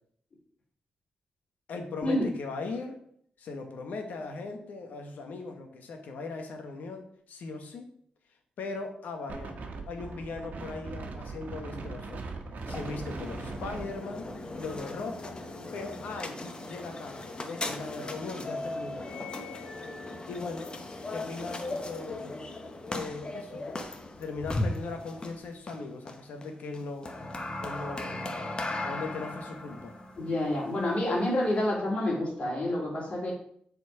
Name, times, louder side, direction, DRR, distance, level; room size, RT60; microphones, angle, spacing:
voice 1, 1.7-3.0 3.4-7.9 8.6-9.6 9.9-12.3 12.7-14.3 14.6-15.4 15.7-19.1 20.3-20.8 21.1-22.4 22.9-23.7 24.2-27.1 27.6-29.9, left 3 dB, 85° left, 4 dB, 1.3 m, -39 dB
Wind, 9.3-14.8, right 3 dB, 75° right, 1.1 m, -40 dB
sound 1, 12.6-31.7, left 2 dB, 35° left, 0.9 m, -38 dB
voice 2, 30.2-33.3, left 1 dB, 50° left, -3 dB, 3.0 m, -28 dB
7.0 x 4.4 x 4.8 m, 0.65 s
cardioid pair, 85°, 3 cm